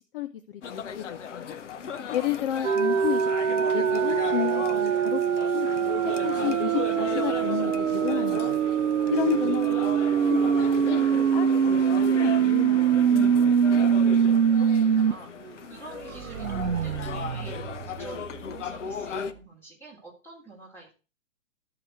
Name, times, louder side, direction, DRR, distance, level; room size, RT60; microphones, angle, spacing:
voice 1, 0.1-1.6 2.1-5.7 6.0-8.7 9.1-10.5 10.8-12.8 13.1-13.6, left 12 dB, 45° left, 9 dB, 0.6 m, -32 dB
sound 1, 0.6-19.3, left 7 dB, 65° left, 0.9 m, -37 dB
sound 2, 2.6-15.1 15.5-15.6 15.9-18.6, right 8 dB, 85° right, 0.6 m, -24 dB
voice 2, 2.9-3.4 13.9-17.6 17.9-20.9, right 3 dB, 5° left, -1 dB, 3.4 m, -48 dB
13.5 x 4.8 x 4.6 m, 0.34 s
figure-of-eight pair, 125°, 39 cm